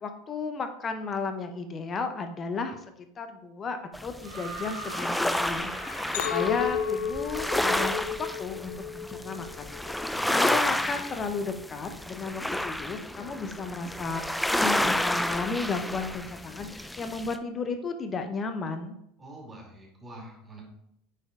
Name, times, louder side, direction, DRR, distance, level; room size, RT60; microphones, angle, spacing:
voice 1, 0.0-2.8 3.2-14.2 14.5-19.0, left 4 dB, 30° left, 7 dB, 0.9 m, -34 dB
sound 1, 3.9-17.4, left 1 dB, 5° left, 0.5 m, -31 dB
sound 2, 4.2-7.3 8.5-8.6, right 2 dB, 70° right, 2.6 m, -42 dB
Chink clink, 6.1-10.5 10.9-11.4, left 8 dB, 70° left, 0.3 m, -33 dB
voice 2, 10.0-10.8 19.2-20.6, right 1 dB, 20° right, -2 dB, 2.4 m, -46 dB
6.5 x 4.3 x 3.7 m, 0.78 s
hypercardioid pair, 85°, 0 cm